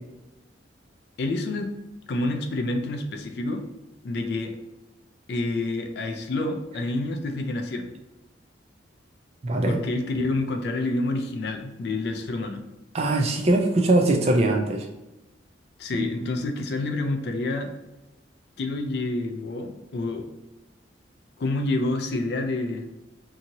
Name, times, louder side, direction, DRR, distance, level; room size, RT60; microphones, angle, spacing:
voice 1, 1.2-1.7 2.1-3.6 4.0-4.6 5.3-7.9 9.7-12.6 15.8-17.7 18.6-20.3 21.4-22.9, left 2 dB, 55° left, 5 dB, 0.3 m, -28 dB
voice 2, 9.4-9.8 12.9-14.9, right 2 dB, 35° right, 3 dB, 0.3 m, -21 dB
2.8 x 2.7 x 2.6 m, 0.98 s
head